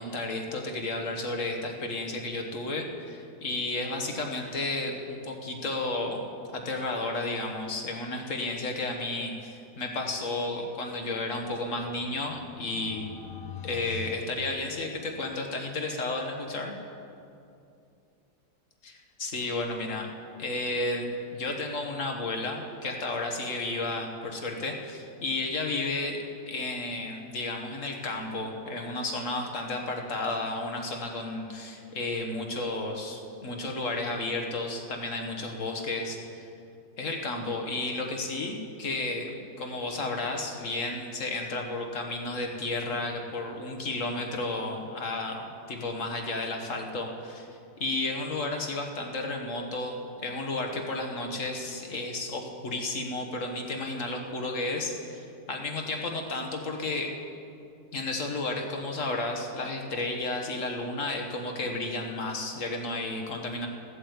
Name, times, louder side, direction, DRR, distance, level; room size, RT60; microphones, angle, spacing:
voice 1, 0.0-6.2 6.5-13.1 13.6-16.7 18.8-20.1 20.4-36.5 37.0-47.5 47.8-57.1 57.9-63.7, left 2 dB, 50° left, 2 dB, 1.6 m, -32 dB
sound 1, 11.8-15.3, left 7 dB, 85° left, 1.7 m, -44 dB
14.5 x 8.0 x 8.1 m, 2.6 s
omnidirectional pair, 1.8 m